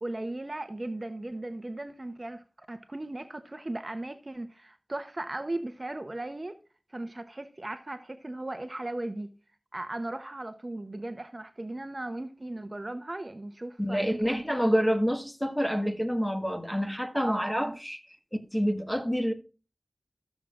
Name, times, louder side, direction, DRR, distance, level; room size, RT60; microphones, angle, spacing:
voice 1, 0.0-6.6 6.9-9.3 9.7-14.7 17.1-17.8, right 2 dB, 40° right, 0.8 m, -37 dB
voice 2, 13.8-18.0 18.5-19.3, equal, 5° left, 1.5 m, -27 dB
14.0 x 7.2 x 2.5 m
wide cardioid pair, 65°, 0 cm